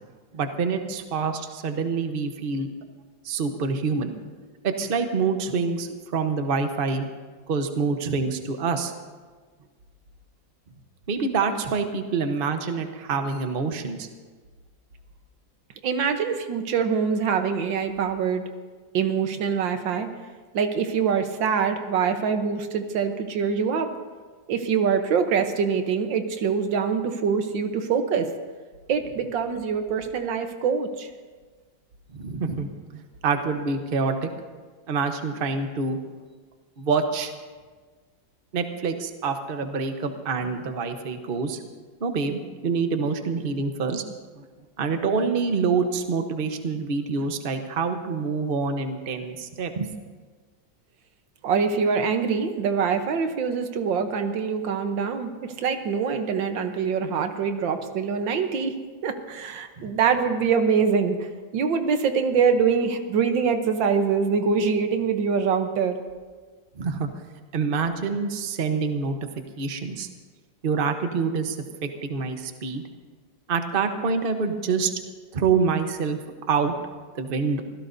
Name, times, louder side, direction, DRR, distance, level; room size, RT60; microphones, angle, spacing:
voice 1, 0.3-2.7 3.2-4.1 4.6-7.1 7.5-8.9 11.1-14.1 32.1-34.3 34.9-36.0 36.8-37.3 38.5-41.6 42.0-44.0 44.4-44.5 44.8-49.9 59.8-59.9 66.8-67.1 67.5-69.1 69.6-70.1 70.6-71.6 71.8-72.8 73.5-74.9 75.3-76.2 76.5-76.7 77.1-77.6, right 5 dB, 35° right, 6 dB, 1.0 m, -26 dB
voice 2, 15.8-18.4 18.9-20.1 20.5-23.9 24.5-28.3 28.9-31.1 51.4-55.3 55.6-58.7 59.0-61.2 61.5-66.0, right 6 dB, 80° right, 7 dB, 1.7 m, -24 dB
25.0 x 16.5 x 2.7 m, 1.4 s
omnidirectional pair, 2.0 m